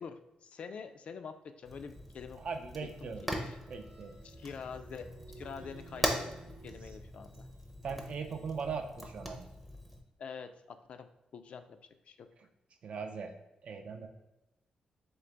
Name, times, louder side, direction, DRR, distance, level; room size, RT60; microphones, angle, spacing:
voice 1, 0.0-2.4 2.8-3.6 4.2-5.1 5.4-7.5 10.2-11.1 11.3-11.8 12.1-12.3, left 6 dB, 55° left, 9 dB, 0.3 m, -46 dB
Fire, 1.6-10.0, equal, 5° right, 0.5 m, -41 dB
voice 2, 2.4-3.3 3.7-4.2 7.8-9.5 12.8-13.3 13.6-14.1, right 5 dB, 55° right, 6 dB, 0.4 m, -39 dB
sound 1, 2.8-6.8, right 2 dB, 80° right, 0.8 m, -54 dB
3.8 x 3.1 x 3.3 m, 0.94 s
wide cardioid pair, 130°, 2 cm